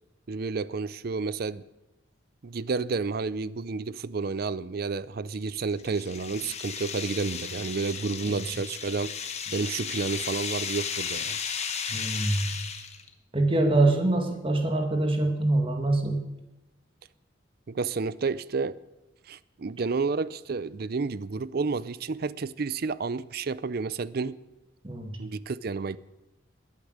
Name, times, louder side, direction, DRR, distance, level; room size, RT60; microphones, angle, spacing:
voice 1, 0.3-1.6 2.4-9.1 9.5-11.4 17.7-18.8 19.3-24.4 25.2-26.0, right 4 dB, 50° right, 0.5 m, -30 dB
sound 1, 5.3-13.1, left 7 dB, 35° left, 1.1 m, -35 dB
voice 2, 11.9-12.5 13.3-16.2 24.8-25.2, right 2 dB, 25° right, 1.9 m, -24 dB
21.5 x 8.4 x 6.5 m
head